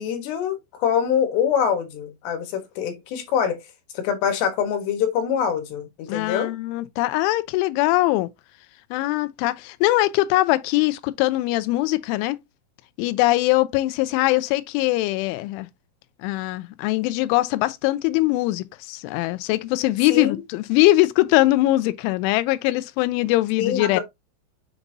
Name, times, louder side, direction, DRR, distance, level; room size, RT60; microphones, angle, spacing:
voice 1, 0.0-3.6 3.9-6.5 20.1-20.4 23.6-24.0, left 8 dB, 70° left, 3.3 m, -24 dB
voice 2, 6.1-8.3 8.9-12.4 13.0-15.7 16.2-24.0, left 18 dB, 85° left, 3.0 m, -21 dB
7.1 x 5.3 x 2.6 m
omnidirectional pair, 5.6 m